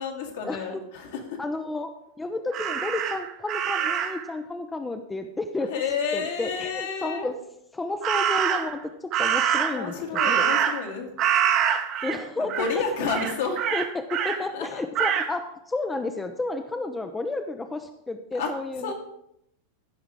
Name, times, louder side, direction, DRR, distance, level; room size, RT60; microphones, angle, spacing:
voice 1, 0.0-1.4 5.7-7.3 9.7-11.2 12.1-13.6 14.4-14.8 18.3-18.5 18.8-18.9, left 5 dB, 55° left, 2 dB, 1.9 m, -30 dB
voice 2, 1.4-1.9 2.2-5.7 6.1-7.3 7.7-10.5 12.0-12.5 13.5-18.9, left 2 dB, 10° left, 7 dB, 0.6 m, -31 dB
Crow, 2.5-4.3 8.0-8.8 9.1-10.9 11.2-12.2 12.5-12.8 13.1-14.4 14.9-15.3, right 9 dB, 35° right, 0.9 m, -25 dB
15.5 x 5.8 x 3.6 m, 0.76 s
figure-of-eight pair, 90°, 0 cm